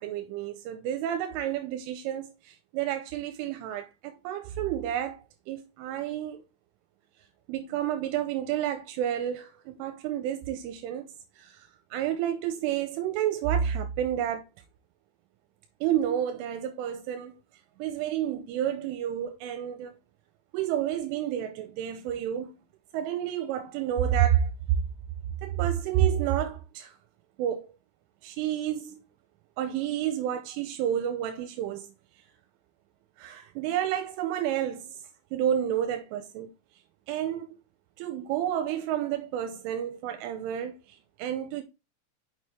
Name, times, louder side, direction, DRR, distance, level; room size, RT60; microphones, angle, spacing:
voice 1, 0.0-5.2 5.5-6.4 7.5-11.1 11.4-14.4 15.8-17.3 17.8-20.0 20.5-22.5 22.9-24.5 25.4-26.9 27.4-27.7 28.2-29.0 29.6-31.9 33.2-35.0 35.3-36.5 37.1-37.5 38.0-41.6, right 10 dB, 85° right, 3.2 m, -30 dB
6.4 x 5.7 x 3.5 m
omnidirectional pair, 5.7 m